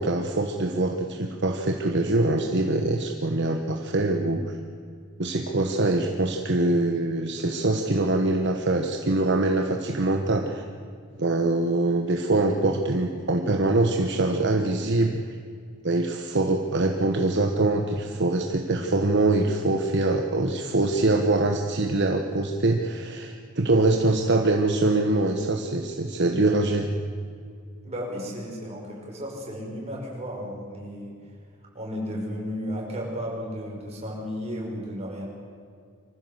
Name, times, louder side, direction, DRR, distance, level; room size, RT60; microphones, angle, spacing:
voice 1, 0.0-4.6 5.2-10.6 11.2-15.2 15.8-27.0, right 2 dB, 55° right, 3 dB, 1.3 m, -24 dB
voice 2, 27.8-31.1 31.7-35.2, equal, 30° right, -2 dB, 5.6 m, -34 dB
24.5 x 15.0 x 8.1 m, 2.2 s
head